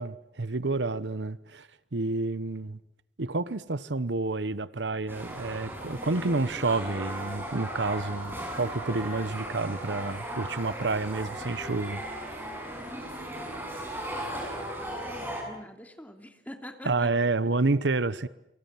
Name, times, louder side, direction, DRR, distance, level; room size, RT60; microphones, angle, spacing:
voice 1, 0.0-2.8 3.2-12.4 16.8-18.3, right 3 dB, 85° right, 1.0 m, -29 dB
sound 1, 5.1-15.4, right 1 dB, 15° right, 7.8 m, -37 dB
voice 2, 13.5-14.0 14.3-17.1, equal, 10° left, 3.0 m, -46 dB
29.0 x 24.0 x 7.6 m
head